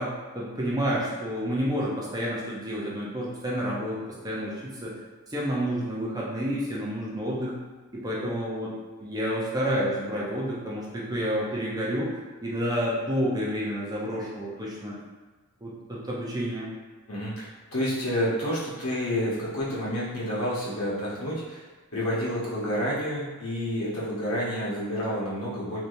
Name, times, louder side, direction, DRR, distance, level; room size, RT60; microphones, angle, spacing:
voice 1, 0.0-5.0 5.3-7.6 7.9-8.7 9.0-12.1 12.4-15.0 15.6-16.7, equal, 15° right, -6 dB, 0.5 m, -29 dB
voice 2, 17.1-21.6 21.9-25.8, equal, 70° left, -8 dB, 1.1 m, -29 dB
3.2 x 2.7 x 2.6 m, 1.3 s
head